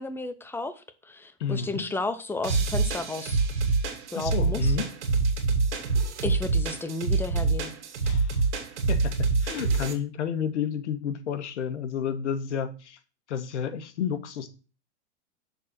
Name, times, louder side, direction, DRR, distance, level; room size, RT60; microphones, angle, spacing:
voice 1, 0.0-3.4 4.1-4.8 6.2-7.7, left 2 dB, 5° left, 10 dB, 0.6 m, -33 dB
voice 2, 1.4-1.8 4.1-4.8 8.0-8.4 8.9-9.1 9.4-13.0 13.3-14.5, left 7 dB, 85° left, 10 dB, 1.3 m, -31 dB
sound 1, 2.4-9.9, right 4 dB, 85° right, 2.5 m, -26 dB
6.6 x 4.1 x 6.1 m, 0.33 s
hypercardioid pair, 125°, 34 cm